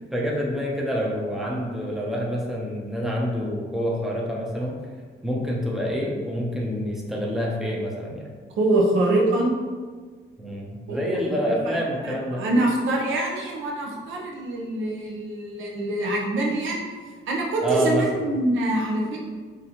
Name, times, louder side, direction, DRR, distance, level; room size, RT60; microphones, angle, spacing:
voice 1, 0.1-4.8 5.2-8.3 10.4-12.5 17.6-18.0, equal, ahead, -3 dB, 0.9 m, -27 dB
voice 2, 8.6-9.6 10.9-11.8 12.0-16.8 17.3-19.2, right 1 dB, 80° right, -1 dB, 0.9 m, -24 dB
5.2 x 2.8 x 3.0 m, 1.5 s
cardioid pair, 90°, 20 cm